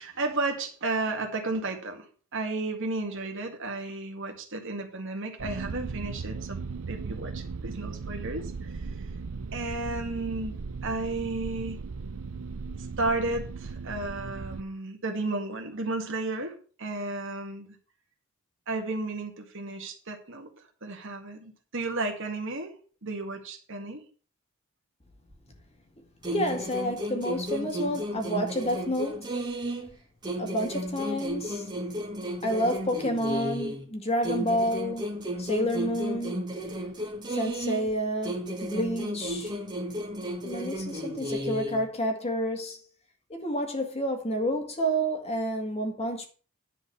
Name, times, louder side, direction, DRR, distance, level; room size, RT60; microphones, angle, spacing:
voice 1, 0.0-2.1 2.3-6.6 6.9-8.8 9.5-10.5 10.8-11.8 13.0-16.5 16.8-17.8 18.7-20.5 20.8-22.7 23.0-24.0, right 2 dB, 60° right, 2.0 m, -33 dB
sound 1, 5.4-14.6, right 4 dB, 80° right, 0.6 m, -37 dB
sound 2, 26.2-29.9 30.2-33.9 34.2-37.9 38.2-41.9, equal, 20° right, 1.8 m, -33 dB
voice 2, 26.3-29.3 30.4-31.7 32.4-35.1 35.4-36.4 37.3-39.5 40.4-42.8 43.3-46.2, equal, 30° left, 2.1 m, -29 dB
10.5 x 4.5 x 6.8 m
head